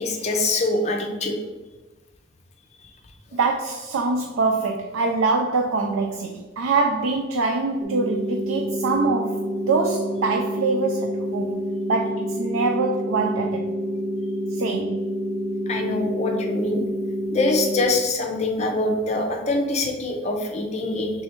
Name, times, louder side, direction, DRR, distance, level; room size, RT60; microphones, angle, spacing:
voice 1, 0.0-1.4 15.7-16.8 17.3-21.1, left 2 dB, 35° left, 0.6 m, -24 dB
voice 2, 3.3-11.6 11.9-13.7 14.5-15.0, right 3 dB, 90° right, 0.4 m, -24 dB
sound 1, 7.8-17.8, equal, 25° right, 1.1 m, -28 dB
3.3 x 3.3 x 4.3 m
head